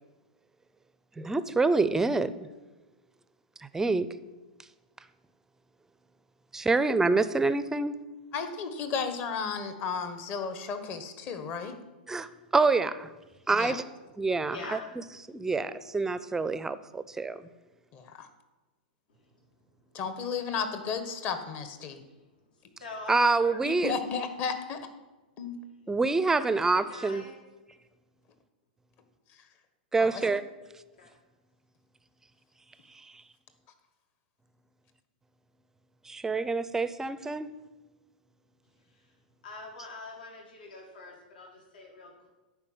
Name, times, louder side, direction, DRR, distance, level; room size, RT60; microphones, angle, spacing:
voice 1, 1.2-2.5 3.7-4.1 6.5-8.0 12.1-13.1 13.5-13.8 14.2-14.6 15.3-17.4 23.1-23.9 25.9-27.2 29.9-30.4 36.1-37.5, right 3 dB, 10° right, 14 dB, 0.5 m, -26 dB
voice 2, 8.3-11.7 13.5-13.8 17.9-18.3 19.9-22.0 23.6-24.8 25.4-25.6 30.0-30.4, left 6 dB, 40° left, 8 dB, 1.3 m, -34 dB
voice 3, 14.5-14.9 19.1-19.4 19.9-20.0 21.9-23.6 26.5-27.4 30.9-31.2 38.8-39.2 39.4-42.3, left 3 dB, 75° left, 1 dB, 2.0 m, -45 dB
10.5 x 4.8 x 7.6 m, 1.1 s
hypercardioid pair, 115°, 5 cm